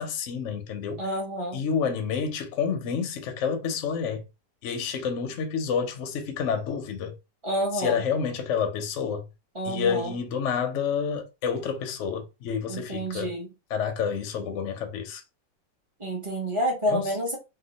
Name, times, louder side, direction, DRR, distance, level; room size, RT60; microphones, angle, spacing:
voice 1, 0.0-1.1 1.5-4.3 4.6-7.1 7.7-9.3 9.6-13.3 13.7-15.2 16.9-17.4, left 6 dB, 65° left, 0.8 m, -29 dB
voice 2, 1.0-1.6 7.4-8.0 9.5-10.1 12.7-13.5 16.0-17.4, equal, 30° right, 0.6 m, -29 dB
2.8 x 2.2 x 3.9 m
omnidirectional pair, 1.8 m